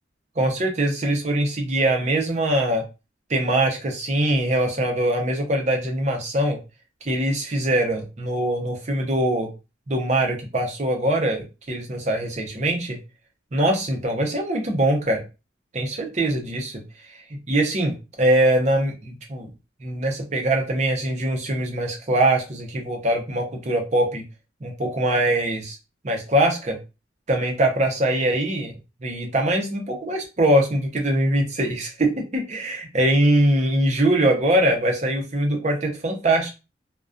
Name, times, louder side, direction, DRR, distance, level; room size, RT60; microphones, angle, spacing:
voice 1, 0.4-2.9 3.3-6.6 7.0-9.5 9.9-13.0 13.5-15.2 15.7-16.8 17.3-19.5 19.8-24.3 24.6-25.8 26.0-26.8 27.3-28.7 29.0-36.6, right 1 dB, 35° right, 2 dB, 0.6 m, -22 dB
2.3 x 2.2 x 2.4 m, 0.28 s
head